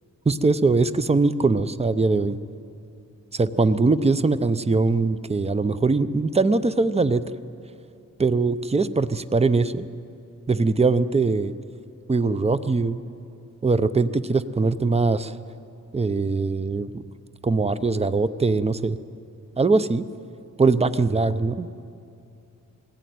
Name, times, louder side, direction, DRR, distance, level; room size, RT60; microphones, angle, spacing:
voice 1, 0.3-2.4 3.3-7.2 8.2-9.9 10.5-11.5 12.1-13.0 13.6-15.4 15.9-17.0 17.4-19.0 19.6-20.0 20.6-21.7, right 3 dB, 20° right, 13 dB, 0.6 m, -21 dB
20.5 x 15.5 x 9.4 m, 2.5 s
wide cardioid pair, 110°, 31 cm